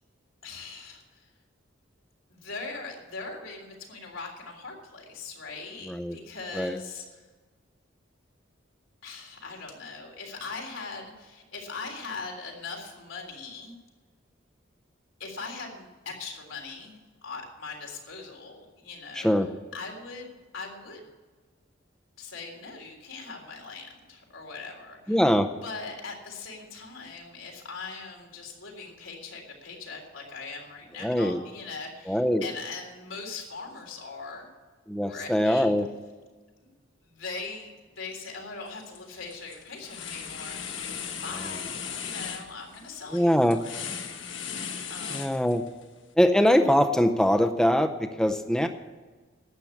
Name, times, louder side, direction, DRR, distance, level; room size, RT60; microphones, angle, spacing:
voice 1, 0.4-1.3 2.3-7.3 9.0-13.8 15.2-19.3 19.7-21.1 22.2-25.2 25.6-34.5 35.1-35.7 36.6-36.7 37.0-40.6 40.9-44.1 44.9-45.5, left 4 dB, 90° left, 0 dB, 3.6 m, -40 dB
voice 2, 5.9-6.2 6.5-6.8 19.1-19.5 25.1-25.5 31.0-31.4 32.1-32.5 34.9-35.9 43.1-43.6 45.1-45.6 46.2-48.7, equal, 5° left, 6 dB, 0.6 m, -22 dB
sound 1, 38.7-39.0 39.3-45.8, left 7 dB, 70° left, 1.5 m, -37 dB
12.0 x 8.6 x 8.4 m, 1.3 s
head